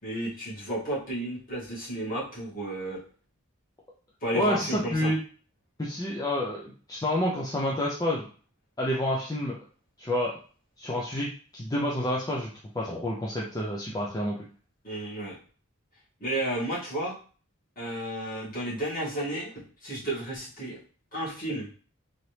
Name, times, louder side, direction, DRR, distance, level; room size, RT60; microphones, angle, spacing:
voice 1, 0.0-3.0 4.2-5.1 14.8-15.4 16.2-17.1 17.8-19.5 19.8-20.8 21.1-21.7, right 1 dB, 40° left, -8 dB, 2.1 m, -32 dB
voice 2, 4.3-5.2 5.8-8.3 8.8-9.6 10.0-10.3 10.8-14.4, left 1 dB, 20° left, -3 dB, 0.5 m, -29 dB
4.0 x 2.9 x 3.2 m, 0.40 s
head